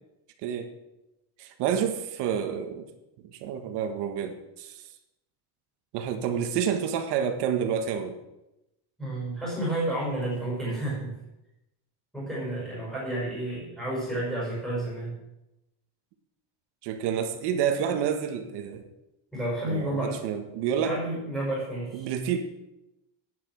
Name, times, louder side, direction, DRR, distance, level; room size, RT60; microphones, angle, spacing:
voice 1, 1.4-2.9 3.3-4.8 5.9-8.2 16.8-18.8 19.7-21.0 21.9-22.4, right 8 dB, 60° right, 6 dB, 1.6 m, -29 dB
voice 2, 9.0-11.1 12.1-15.2 19.3-20.2 20.8-22.1, right 1 dB, ahead, -8 dB, 5.9 m, -31 dB
12.5 x 9.6 x 6.2 m, 0.93 s
cardioid pair, 180°, 45 cm